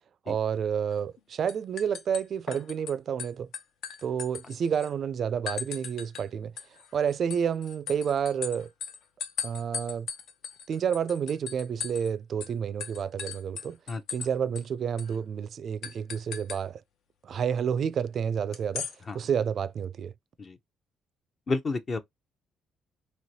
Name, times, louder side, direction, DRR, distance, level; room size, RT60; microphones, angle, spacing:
voice 1, 0.3-3.5 4.0-6.5 6.9-8.7 9.4-10.1 10.7-13.8 14.1-16.8 17.2-18.9 19.1-20.1, right 7 dB, 50° right, 0.3 m, -29 dB
sound 1, 0.9-1.2 1.5-2.9 3.2-4.9 5.5-6.3 6.6-12.1 12.4-12.5 12.8-14.3 14.6-14.7 15.0-15.2 15.8-16.6 18.5-19.0, left 7 dB, 70° left, 0.7 m, -38 dB
voice 2, 21.5-22.0, left 3 dB, 35° left, 0.6 m, -30 dB
3.1 x 2.9 x 2.7 m
cardioid pair, 95°, 0 cm